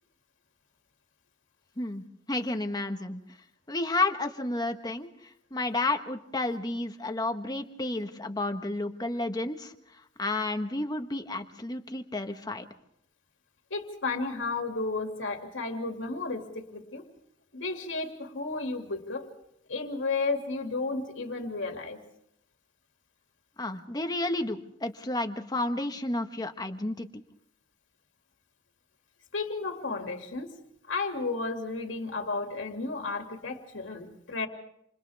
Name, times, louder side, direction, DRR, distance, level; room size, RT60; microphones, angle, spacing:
voice 1, 1.8-3.2 3.7-12.6 23.6-27.2, left 2 dB, 20° left, 6 dB, 1.4 m, -31 dB
voice 2, 13.7-17.0 17.5-19.3 19.7-22.0 29.3-30.5 30.9-34.5, left 3 dB, 75° left, 2 dB, 2.5 m, -33 dB
28.0 x 28.0 x 3.5 m, 0.77 s
head